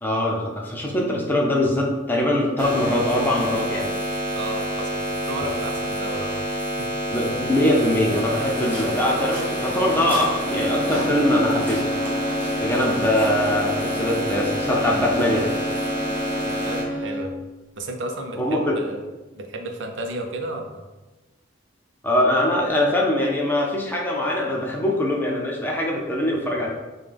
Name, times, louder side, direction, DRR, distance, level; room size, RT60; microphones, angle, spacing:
voice 1, 0.0-3.9 7.1-11.8 12.6-15.5 18.4-18.8 22.0-26.7, left 1 dB, 10° left, -2 dB, 0.6 m, -22 dB
sound 1, 2.6-16.8, equal, 35° right, 1.3 m, -28 dB
voice 2, 4.3-6.9 16.4-17.4 17.8-19.0 19.3-20.9, right 1 dB, 80° right, 3 dB, 0.6 m, -33 dB
Waves surf, 8.2-17.0, equal, 10° right, 0.9 m, -38 dB
sound 2, 10.4-17.5, left 1 dB, 80° left, 0.7 m, -30 dB
5.5 x 2.2 x 3.4 m, 1.1 s
head